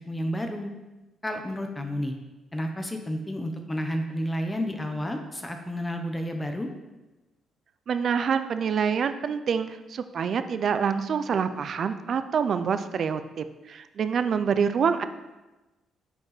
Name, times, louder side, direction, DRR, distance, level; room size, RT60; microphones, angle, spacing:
voice 1, 0.1-0.7 1.2-2.1 2.5-6.7, equal, 15° left, 4 dB, 0.8 m, -31 dB
voice 2, 7.9-15.0, right 6 dB, 55° right, 11 dB, 0.5 m, -26 dB
9.0 x 5.3 x 4.1 m, 1.1 s
cardioid pair, 90°, 0 cm